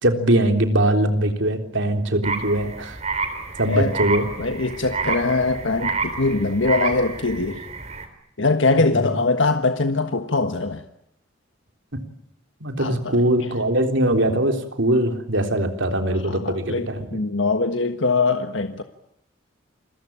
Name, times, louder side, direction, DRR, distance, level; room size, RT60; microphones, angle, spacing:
voice 1, 0.0-3.0 3.6-4.3 8.8-9.1 11.9-12.0 12.6-17.1, right 1 dB, 70° right, 3.6 m, -21 dB
sound 1, 2.2-8.1, right 4 dB, 35° right, 3.9 m, -29 dB
voice 2, 4.4-7.6 8.4-10.8 12.8-13.5 16.2-18.8, left 3 dB, 75° left, 1.5 m, -22 dB
28.5 x 22.5 x 8.8 m
head